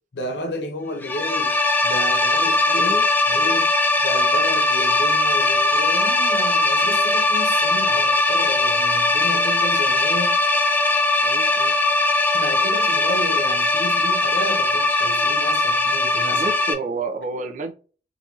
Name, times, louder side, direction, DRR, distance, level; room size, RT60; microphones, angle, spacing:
voice 1, 0.1-1.5 1.8-2.9 3.3-3.7 4.0-10.4 12.3-16.4, left 1 dB, 70° left, 0.7 m, -32 dB
sound 1, 1.0-16.7, left 2 dB, 10° left, 0.4 m, -20 dB
voice 2, 2.7-3.1 11.2-11.8 16.3-17.7, right 3 dB, 45° right, 0.6 m, -30 dB
3.9 x 2.6 x 2.8 m
head